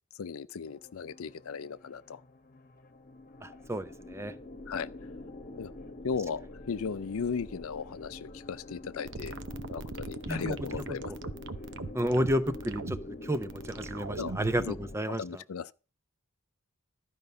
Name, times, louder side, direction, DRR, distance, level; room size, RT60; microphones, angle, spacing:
voice 1, 0.2-2.2 4.7-4.9 5.6-5.7 6.0-9.4 9.7-11.3 14.2-14.8 15.2-15.7, left 5 dB, 75° left, 0.5 m, -36 dB
sound 1, 0.7-15.0, left 2 dB, 40° left, 1.2 m, -46 dB
voice 2, 3.4-4.3 10.3-10.6 11.9-15.2, equal, 15° right, 0.6 m, -31 dB
sound 2, 9.0-14.6, right 3 dB, 60° right, 0.7 m, -40 dB
12.5 x 5.4 x 6.6 m
head